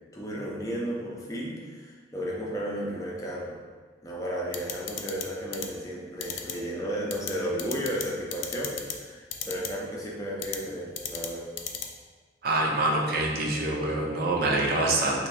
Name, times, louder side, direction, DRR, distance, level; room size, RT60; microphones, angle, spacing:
voice 1, 0.1-3.6 4.0-11.5, equal, 20° left, -4 dB, 0.5 m, -33 dB
sound 1, 4.5-5.2 5.5-5.7 6.2-6.5 7.1-7.3 7.6-8.0 8.3-8.9 9.3-9.7 10.4-10.6 11.0-11.3 11.6-11.9, left 9 dB, 90° left, 0.4 m, -33 dB
voice 2, 12.4-15.3, right 2 dB, 55° right, -1 dB, 0.4 m, -25 dB
3.3 x 2.5 x 3.2 m, 1.5 s
head